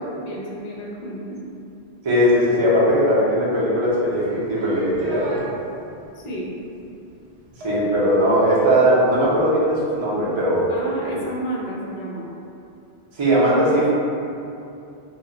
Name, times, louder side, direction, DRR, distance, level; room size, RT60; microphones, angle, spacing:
voice 1, 0.0-1.4 6.1-6.5 10.7-12.3, right 1 dB, 50° left, -5 dB, 0.5 m, -31 dB
voice 2, 2.0-5.4 7.6-10.7 13.2-13.9, equal, 35° right, -8 dB, 0.5 m, -19 dB
sound 1, 4.2-5.4 7.6-9.2, right 4 dB, 85° right, 0.9 m, -26 dB
2.1 x 2.0 x 3.6 m, 2.7 s
omnidirectional pair, 1.1 m